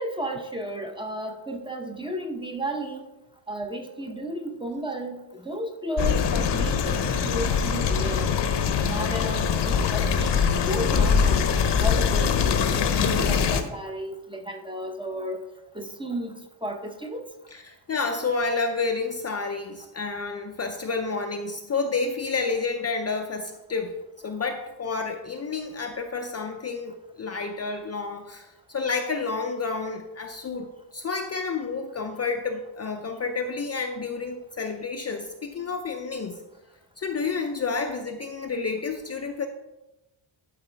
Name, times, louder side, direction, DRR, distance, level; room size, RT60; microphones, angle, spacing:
voice 1, 0.0-3.1 3.5-8.3 8.8-10.4 10.7-15.4 15.7-16.3 16.6-17.3, right 1 dB, 10° right, 4 dB, 0.7 m, -33 dB
sound 1, 6.0-13.6, left 6 dB, 55° left, 0.8 m, -23 dB
voice 2, 17.5-24.0 24.2-36.4 37.0-39.5, left 4 dB, 30° left, 4 dB, 0.5 m, -30 dB
12.0 x 4.7 x 4.4 m, 1.0 s
wide cardioid pair, 160°, 49 cm